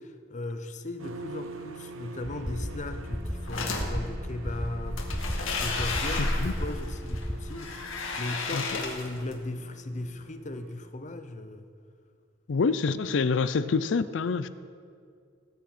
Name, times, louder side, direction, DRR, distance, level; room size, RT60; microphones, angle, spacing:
voice 1, 0.0-11.7, left 2 dB, 35° left, 8 dB, 0.7 m, -37 dB
sound 1, 1.0-10.9, right 1 dB, 90° right, 0.9 m, -45 dB
sound 2, 2.2-7.6, equal, ahead, 0.5 m, -35 dB
sound 3, 3.3-3.9 4.8-9.3, left 2 dB, 85° left, 1.9 m, -32 dB
voice 2, 6.2-6.5 8.5-8.8 12.5-14.5, left 4 dB, 65° left, 14 dB, 0.4 m, -27 dB
18.5 x 8.7 x 4.3 m, 2.2 s
head